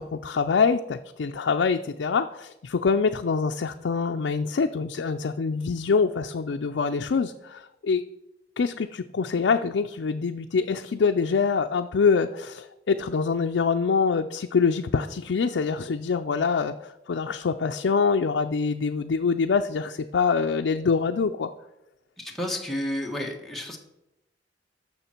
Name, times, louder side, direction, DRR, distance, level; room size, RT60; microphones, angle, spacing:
voice 1, 0.0-8.0 8.6-21.5, left 5 dB, 75° left, 6 dB, 0.4 m, -25 dB
voice 2, 22.2-23.8, left 1 dB, ahead, -1 dB, 1.4 m, -31 dB
14.0 x 5.8 x 4.4 m, 0.91 s
head